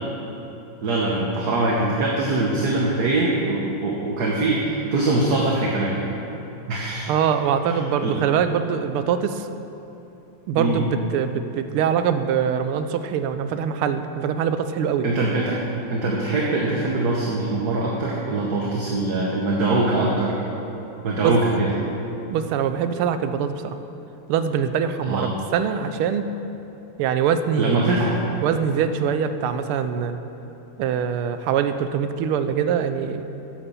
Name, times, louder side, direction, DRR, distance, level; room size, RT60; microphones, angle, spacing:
voice 1, 0.8-6.0 6.7-7.1 7.6-7.7 8.0-8.2 10.6-10.8 15.0-15.6 15.9-20.3 21.0-21.7 25.1-25.3 27.6-28.2, right 2 dB, 50° right, -3 dB, 1.6 m, -22 dB
voice 2, 7.1-9.5 10.5-15.1 21.2-21.4 22.3-23.8 24.3-26.3 27.0-27.9 28.4-30.2 30.8-33.2, right 7 dB, 85° right, 10 dB, 1.5 m, -23 dB
11.0 x 8.1 x 7.0 m, 3.0 s
omnidirectional pair, 2.4 m